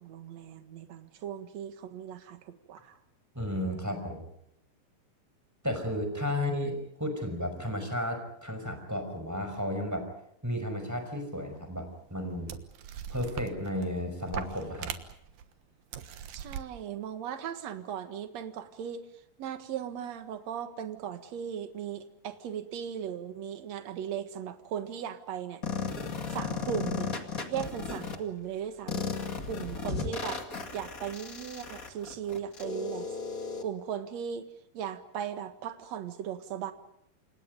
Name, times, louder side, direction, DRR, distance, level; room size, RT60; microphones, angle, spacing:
voice 1, 0.0-3.0 16.3-19.1 19.4-25.6 26.3-27.1 27.5-29.2 29.5-30.4 30.7-33.1 33.6-34.5 34.7-36.7, right 9 dB, 55° right, 8 dB, 2.5 m, -37 dB
voice 2, 3.3-4.3 5.6-10.1 10.4-12.6 13.1-14.9, left 1 dB, 5° right, 6 dB, 5.2 m, -33 dB
sound 1, 11.4-11.5 12.2-12.3 12.5-13.9 14.3-15.4 15.9-16.6, right 9 dB, 75° right, 3.1 m, -40 dB
sound 2, 25.6-28.1 28.9-33.6, left 5 dB, 30° left, 2.1 m, -35 dB
29.0 x 26.5 x 5.3 m, 0.76 s
omnidirectional pair, 4.1 m